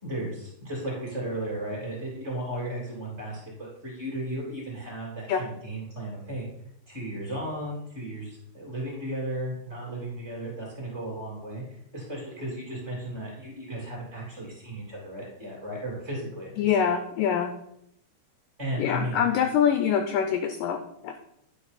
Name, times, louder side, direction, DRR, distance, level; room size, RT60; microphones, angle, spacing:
voice 1, 0.0-6.5 6.9-11.6 11.9-16.6 18.6-19.2, right 1 dB, 20° right, -5 dB, 2.4 m, -35 dB
voice 2, 16.6-17.5 18.8-21.2, left 8 dB, 85° left, 7 dB, 1.9 m, -25 dB
10.5 x 5.3 x 4.1 m, 0.76 s
omnidirectional pair, 4.5 m